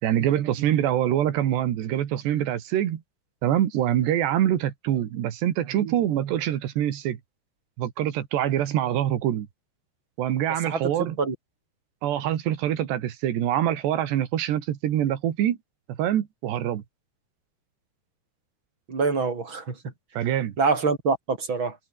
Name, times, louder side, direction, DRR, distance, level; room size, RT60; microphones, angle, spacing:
voice 1, 0.0-3.0 3.4-7.2 7.8-9.5 10.2-11.2 12.0-15.6 15.9-16.8 20.2-20.6, right 11 dB, 90° right, 4.2 m, -25 dB
voice 2, 18.9-19.8 20.6-21.8, right 4 dB, 30° right, 4.7 m, -25 dB
omnidirectional pair, 4.7 m